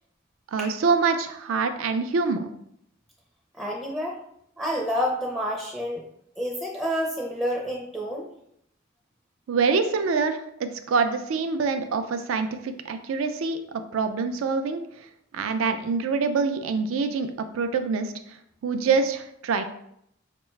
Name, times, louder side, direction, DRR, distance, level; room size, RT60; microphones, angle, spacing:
voice 1, 0.5-2.5 9.5-14.8 15.3-17.3 17.5-18.1 18.6-19.6, right 4 dB, 80° right, 9 dB, 0.4 m, -25 dB
voice 2, 3.5-4.2 4.6-6.0 6.4-8.3, equal, 5° right, -2 dB, 0.4 m, -29 dB
4.6 x 2.2 x 3.1 m, 0.74 s
head